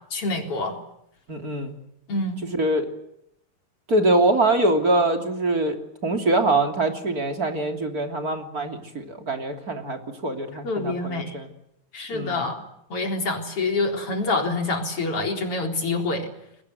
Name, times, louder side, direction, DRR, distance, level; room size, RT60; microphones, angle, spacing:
voice 1, 0.1-0.8 2.1-2.4 10.6-11.4 11.9-12.6 12.9-16.3, left 3 dB, 50° left, 4 dB, 4.8 m, -26 dB
voice 2, 1.3-1.8 2.5-2.9 3.9-5.8 6.0-11.5 12.1-12.5, right 2 dB, 30° right, 5 dB, 3.3 m, -23 dB
29.0 x 22.5 x 8.0 m, 0.78 s
omnidirectional pair, 3.4 m